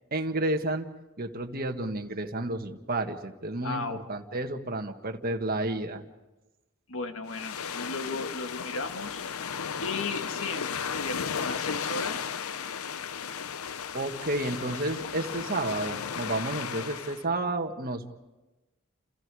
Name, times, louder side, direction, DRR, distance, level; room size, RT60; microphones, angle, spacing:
voice 1, 0.1-0.9 1.2-6.0 13.9-18.2, right 2 dB, 45° right, 4 dB, 1.7 m, -31 dB
voice 2, 3.6-4.0 6.9-9.2 9.8-12.3, left 3 dB, 65° left, 6 dB, 1.8 m, -35 dB
sound 1, 7.3-17.2, left 7 dB, 80° left, 0.7 m, -35 dB
29.5 x 28.0 x 4.9 m, 1.1 s
head